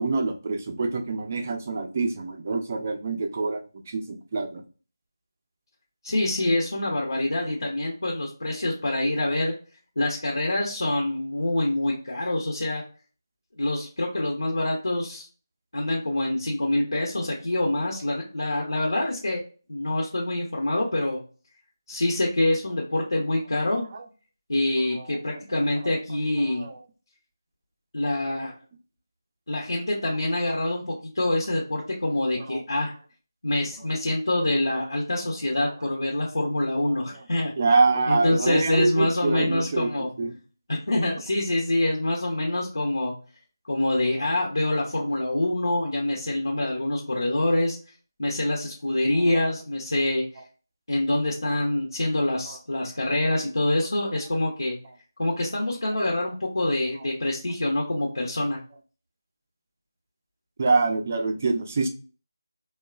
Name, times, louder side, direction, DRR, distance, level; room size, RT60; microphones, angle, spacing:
voice 1, 0.0-3.6 3.9-4.6 17.0-17.1 23.9-24.0 24.8-25.4 25.8-25.9 26.4-26.8 32.4-32.6 34.7-34.9 36.9-37.2 37.6-39.9 40.2-40.3 44.2-44.3 49.1-49.2 52.5-52.6 60.6-61.9, right 3 dB, 30° right, 5 dB, 0.4 m, -26 dB
voice 2, 6.0-9.5 10.0-12.8 13.6-15.3 15.7-19.4 19.7-21.2 21.9-23.8 24.5-26.7 27.9-28.5 29.5-32.9 33.4-37.5 38.1-40.1 40.7-43.1 43.6-47.8 48.2-50.2 50.9-54.8 55.2-58.6, left 1 dB, 75° left, 0 dB, 0.7 m, -26 dB
2.8 x 2.2 x 2.3 m, 0.37 s
figure-of-eight pair, 165°, 2 cm